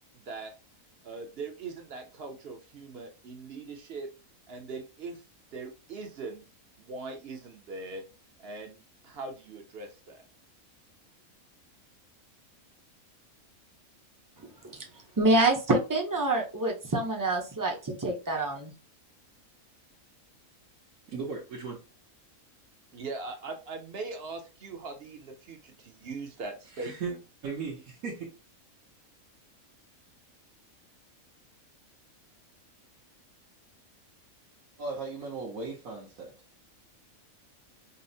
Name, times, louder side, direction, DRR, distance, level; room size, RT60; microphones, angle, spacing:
voice 1, 0.1-0.5 1.0-4.1 4.5-5.2 5.5-6.4 6.8-8.0 8.4-10.2 22.9-27.2, right 3 dB, 55° right, 0.8 m, -41 dB
voice 2, 15.2-18.7, right 2 dB, 25° right, 0.4 m, -26 dB
voice 3, 21.1-21.8 26.8-27.1 27.4-28.3 34.8-36.3, right 4 dB, 75° right, 1.3 m, -36 dB
5.4 x 2.0 x 2.6 m
omnidirectional pair, 1.4 m